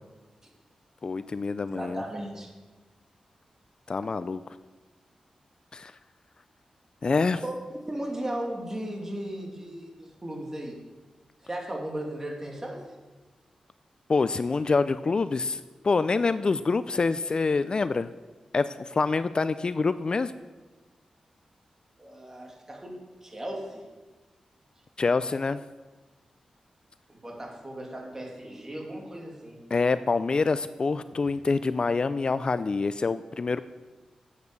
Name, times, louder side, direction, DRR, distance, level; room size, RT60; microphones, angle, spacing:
voice 1, 1.0-2.0 3.9-4.4 5.7-5.9 7.0-7.4 14.1-18.1 18.5-20.3 25.0-25.6 29.7-33.6, left 4 dB, 45° left, 14 dB, 0.4 m, -26 dB
voice 2, 1.7-2.5 7.4-10.7 11.4-12.8 19.1-19.2 22.0-22.9 23.2-23.8 27.1-29.6, right 1 dB, 25° right, 0 dB, 2.7 m, -36 dB
9.6 x 8.2 x 6.8 m, 1.2 s
cardioid pair, 70°, 2 cm